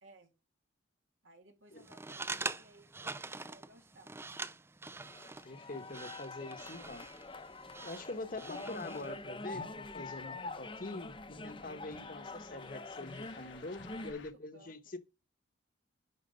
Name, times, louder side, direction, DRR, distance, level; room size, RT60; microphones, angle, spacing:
voice 1, 1.2-4.1 14.0-14.7, right 1 dB, 80° right, 2.7 m, -60 dB
sound 1, 1.8-9.1, right 3 dB, 10° right, 0.4 m, -44 dB
sound 2, 5.0-14.1, left 2 dB, 25° left, 0.8 m, -45 dB
voice 2, 5.4-7.1 7.8-15.0, left 2 dB, 45° left, 1.1 m, -44 dB
sound 3, 6.6-14.3, left 5 dB, 70° left, 1.2 m, -61 dB
11.0 x 4.7 x 5.1 m
head